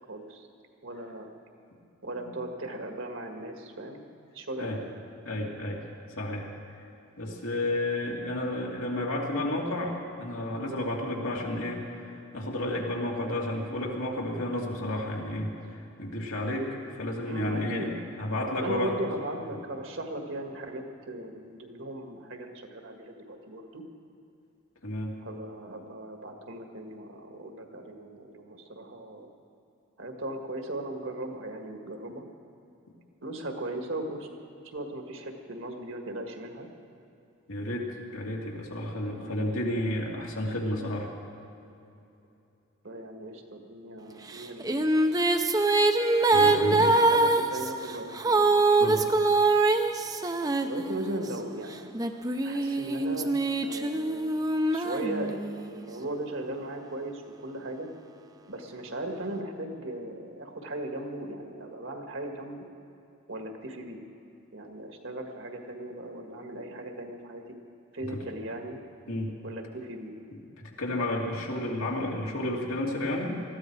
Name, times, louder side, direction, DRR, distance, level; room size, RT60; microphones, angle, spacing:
voice 1, 0.1-0.5 0.8-1.3 2.0-4.0 4.3-4.9 17.3-18.1 18.5-23.8 25.2-29.3 30.0-32.2 33.2-34.3 34.6-36.7 38.8-39.5 42.8-45.4 46.4-48.6 50.6-51.9 52.4-53.3 53.6-54.4 54.7-57.9 58.5-62.6 63.3-64.0 64.5-67.4 67.9-68.8 69.4-70.1, right 1 dB, 70° right, 3 dB, 1.7 m, -37 dB
voice 2, 5.2-5.8 6.2-6.5 7.2-17.9 18.2-18.9 24.8-25.2 37.5-41.1 46.3-46.9 48.8-49.1 68.1-68.2 69.1-69.4 70.6-73.4, left 1 dB, 85° left, -2 dB, 2.6 m, -31 dB
sound 1, 44.3-51.3 51.9-55.7, right 2 dB, 15° right, 0.5 m, -24 dB
20.0 x 14.5 x 4.7 m, 2.8 s
head